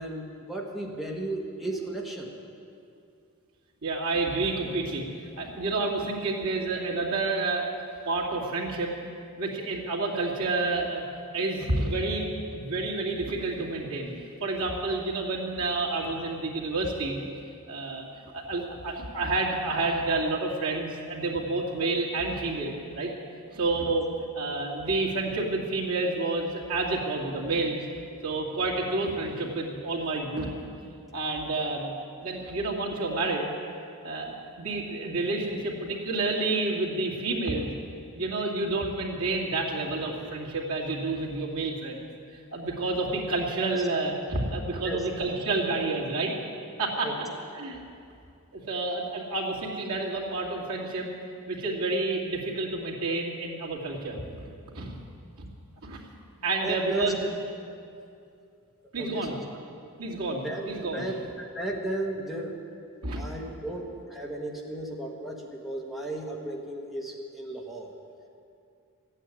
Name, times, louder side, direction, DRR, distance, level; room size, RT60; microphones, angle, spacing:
voice 1, 0.0-2.3 43.7-43.8 44.8-45.0 47.0-47.2 56.6-57.1 59.0-59.4 60.4-60.7 60.9-62.6 63.1-67.9, right 1 dB, ahead, -2 dB, 1.4 m, -34 dB
voice 2, 3.8-5.0 5.4-7.7 8.1-8.9 9.4-11.0 11.3-14.1 14.4-17.2 17.7-18.1 18.3-23.1 23.5-27.8 28.2-30.5 31.1-31.9 32.2-33.5 34.0-37.7 38.1-42.1 42.5-46.3 46.8-47.1 47.6-47.8 48.5-51.1 51.5-55.0 55.4-55.5 55.8-56.0 56.4-57.3 58.9-59.4 60.0-61.1 63.0-63.2, right 2 dB, 70° right, -3 dB, 2.6 m, -29 dB
14.0 x 9.1 x 9.8 m, 2.5 s
head